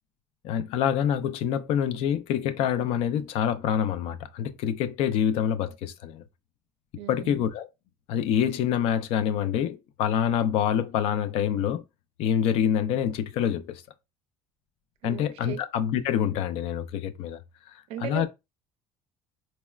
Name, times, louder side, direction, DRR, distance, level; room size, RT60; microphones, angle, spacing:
voice 1, 0.4-6.2 7.1-7.7 8.1-11.8 12.2-13.8 15.0-17.4 18.0-18.3, left 9 dB, 65° left, 0.4 m, -26 dB
voice 2, 7.0-7.5 15.0-15.6 17.9-18.3, right 13 dB, 65° right, 0.4 m, -37 dB
4.0 x 2.1 x 2.3 m
cardioid pair, 135°, 11 cm